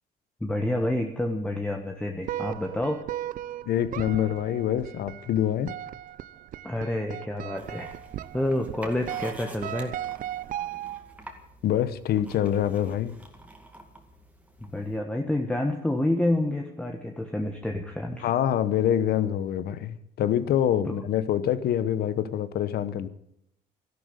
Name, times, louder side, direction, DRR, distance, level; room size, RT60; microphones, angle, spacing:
voice 1, 0.4-3.0 6.6-7.9 8.3-9.9 14.6-18.3 20.8-20.9, left 1 dB, 5° left, 3 dB, 1.4 m, -28 dB
sound 1, 2.2-11.2, right 12 dB, 55° right, 0.5 m, -37 dB
voice 2, 3.7-5.8 11.6-13.1 18.2-23.1, left 10 dB, 65° left, 14 dB, 1.1 m, -25 dB
sound 2, 7.5-15.0, right 1 dB, 10° right, 2.3 m, -48 dB
13.0 x 12.0 x 8.3 m, 0.76 s
cardioid pair, 110°, 17 cm